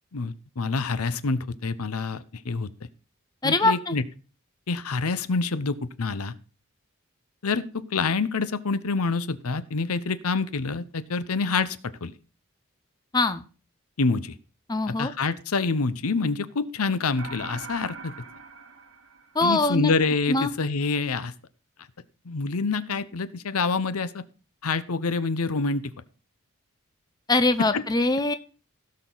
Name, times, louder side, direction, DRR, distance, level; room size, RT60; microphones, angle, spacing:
voice 1, 0.1-2.7 3.4-4.0 4.7-6.3 7.4-12.1 14.0-14.3 14.9-18.1 19.4-21.3 22.2-24.2 24.6-25.9 27.6-27.8, left 4 dB, 85° left, 15 dB, 0.8 m, -27 dB
voice 2, 3.4-3.9 13.1-13.4 14.7-15.1 19.3-19.9 20.3-20.5 27.3-28.3, left 2 dB, 20° left, 10 dB, 0.6 m, -23 dB
sound 1, 17.2-19.8, right 4 dB, 70° right, 1.7 m, -42 dB
16.5 x 6.6 x 3.9 m, 0.35 s
head